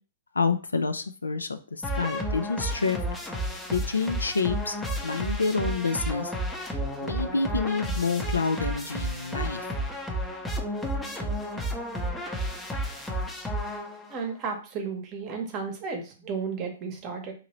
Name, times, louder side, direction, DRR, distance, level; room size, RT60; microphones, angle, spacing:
voice 1, 0.3-3.0 3.7-4.8 5.0-6.3 7.0-9.7, left 4 dB, 85° left, 9 dB, 0.3 m, -28 dB
sound 1, 1.8-14.2, equal, 10° left, 0.6 m, -32 dB
voice 2, 14.1-17.3, right 5 dB, 35° right, 4 dB, 0.9 m, -33 dB
2.9 x 2.6 x 2.9 m, 0.37 s
figure-of-eight pair, 115°, 0 cm